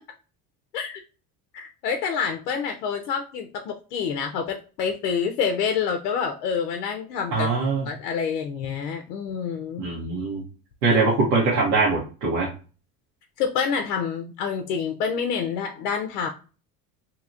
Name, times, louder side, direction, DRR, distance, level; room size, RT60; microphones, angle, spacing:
voice 1, 1.5-7.5 7.9-9.9 13.4-16.3, left 6 dB, 85° left, 5 dB, 0.6 m, -27 dB
voice 2, 7.3-7.8 9.8-10.4 10.8-12.5, right 3 dB, 80° right, -3 dB, 1.1 m, -22 dB
2.9 x 2.8 x 2.4 m, 0.35 s
hypercardioid pair, 75°, 46 cm